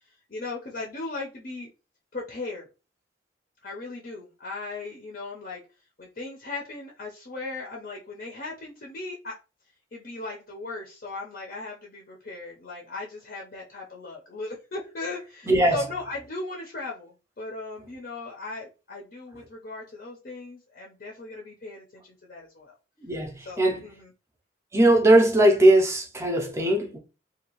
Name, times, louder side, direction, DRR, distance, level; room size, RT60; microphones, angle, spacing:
voice 1, 0.3-1.7 2.1-2.7 3.6-5.6 6.0-9.4 9.9-22.7 23.4-24.1, left 3 dB, 50° left, 0.5 m, -37 dB
voice 2, 15.5-15.8 23.0-23.9 24.7-27.0, right 1 dB, 15° right, 0.5 m, -20 dB
2.6 x 2.3 x 2.8 m
head